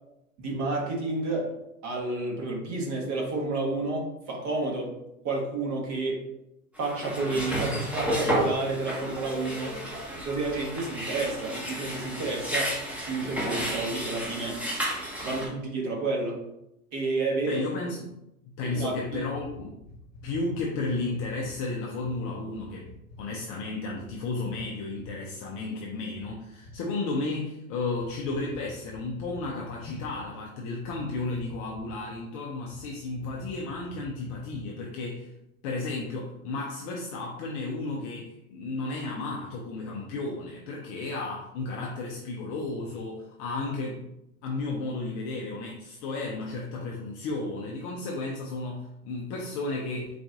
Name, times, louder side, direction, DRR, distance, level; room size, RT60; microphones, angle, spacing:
voice 1, 0.4-1.5 1.8-5.0 5.2-6.3 6.8-9.8 10.2-12.7 13.0-14.6 15.2-16.4 16.9-17.6 18.6-19.2, right 3 dB, 40° right, -1 dB, 1.2 m, -30 dB
sound 1, 6.8-15.5, right 1 dB, 5° right, 1.0 m, -32 dB
voice 2, 17.5-18.1 18.6-19.8 20.2-22.9 23.2-35.3 35.6-44.1 44.4-50.2, left 3 dB, 25° left, -2 dB, 0.3 m, -33 dB
sound 2, 19.0-21.6 22.0-22.2 22.5-23.2 23.9-24.2 24.4-24.6 24.9-25.1 26.1-26.8 27.9-30.3 30.8-32.2 32.7-32.9 33.2-34.8, left 2 dB, 55° left, 1.1 m, -47 dB
4.0 x 2.5 x 3.5 m, 0.85 s
hypercardioid pair, 110°, 44 cm